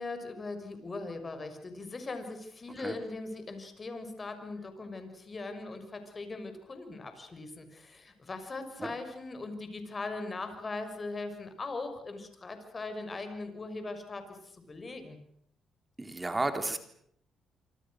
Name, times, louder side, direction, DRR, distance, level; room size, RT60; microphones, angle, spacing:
voice 1, 0.0-15.2, left 3 dB, 30° left, 8 dB, 6.4 m, -40 dB
voice 2, 16.0-16.8, right 2 dB, 15° right, 8 dB, 3.8 m, -32 dB
27.5 x 25.5 x 6.6 m, 0.67 s
cardioid pair, 90°, 0 cm